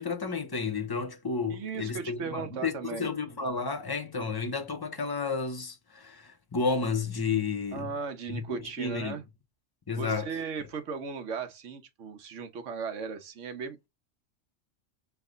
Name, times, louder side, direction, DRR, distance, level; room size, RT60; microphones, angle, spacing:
voice 1, 0.0-7.9 8.3-9.2 9.9-10.3, left 4 dB, 25° left, 0.5 m, -32 dB
voice 2, 1.5-3.1 7.7-9.2 9.9-13.9, right 5 dB, 75° right, 1.2 m, -37 dB
4.7 x 2.1 x 3.7 m
omnidirectional pair, 1.3 m